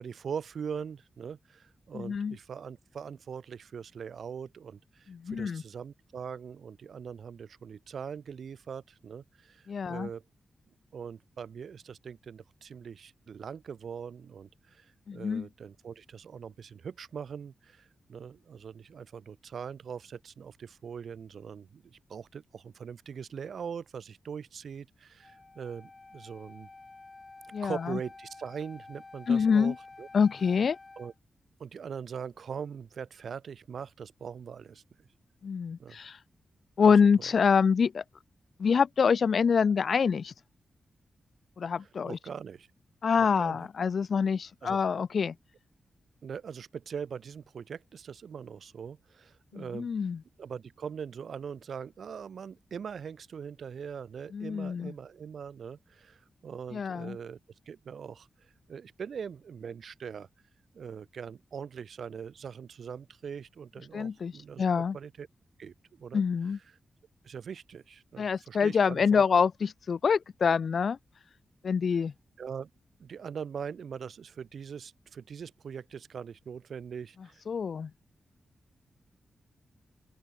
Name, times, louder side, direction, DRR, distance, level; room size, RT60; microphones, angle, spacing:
voice 1, 0.0-10.2 10.9-26.7 27.6-30.1 31.0-31.1 31.6-34.8 35.8-36.0 36.8-36.9 41.8-42.7 43.2-43.7 44.6-44.8 46.2-49.9 50.4-57.4 57.7-60.3 60.7-65.3 65.6-66.2 67.2-69.2 72.4-72.7 73.0-77.4, right 7 dB, 70° right, 7.7 m, -42 dB
voice 2, 1.9-2.4 5.1-5.6 9.7-10.1 15.1-15.5 27.5-28.0 29.3-29.7 30.1-30.8 35.4-36.2 36.8-38.0 38.6-40.3 41.6-42.2 43.0-45.3 49.5-50.2 54.3-54.9 56.7-57.2 63.9-64.3 64.6-65.0 66.1-66.6 68.2-71.0 71.6-72.1 77.5-77.9, left 6 dB, 60° left, 1.1 m, -26 dB
Wind instrument woodwind instrument, 25.2-31.2, left 3 dB, 30° left, 5.9 m, -50 dB
open air
wide cardioid pair, 100°, 0 cm